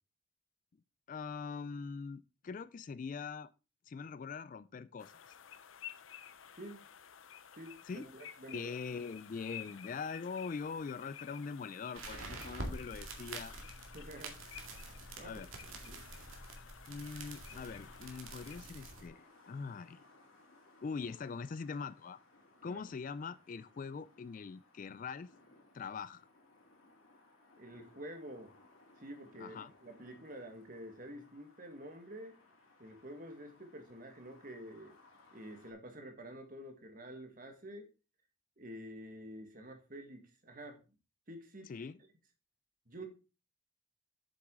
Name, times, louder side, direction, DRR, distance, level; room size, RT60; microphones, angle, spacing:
voice 1, 1.1-3.5 3.9-5.3 7.9-8.1 8.5-13.6 15.2-15.5 16.9-20.0 20.8-22.2 22.6-25.3 25.7-26.3 29.4-29.7 41.7-42.0, left 5 dB, 40° left, 0.3 m, -42 dB
sound 1, 5.0-18.6, left 9 dB, 70° left, 0.6 m, -53 dB
voice 2, 6.5-6.9 7.6-8.7 13.9-14.4 15.2-16.1 22.6-22.8 27.5-28.5 29.0-32.4 32.8-34.9 35.3-37.9 38.6-40.8 41.3-41.7 42.9-43.1, right 1 dB, 40° right, 1.6 m, -49 dB
sound 2, 11.9-19.1, right 2 dB, 85° right, 2.1 m, -47 dB
sound 3, 17.5-35.7, left 2 dB, 85° left, 2.9 m, -64 dB
7.7 x 7.1 x 3.7 m
head